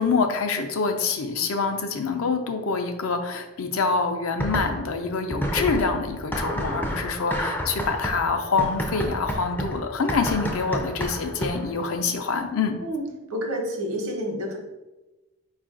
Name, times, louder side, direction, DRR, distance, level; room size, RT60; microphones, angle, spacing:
voice 1, 0.0-12.7, left 4 dB, 70° left, 6 dB, 0.5 m, -26 dB
sound 1, 4.4-5.0 5.3-11.8, equal, 10° left, 0.4 m, -30 dB
voice 2, 13.3-14.6, equal, 75° right, 2 dB, 0.9 m, -29 dB
4.8 x 2.4 x 3.7 m, 1.1 s
head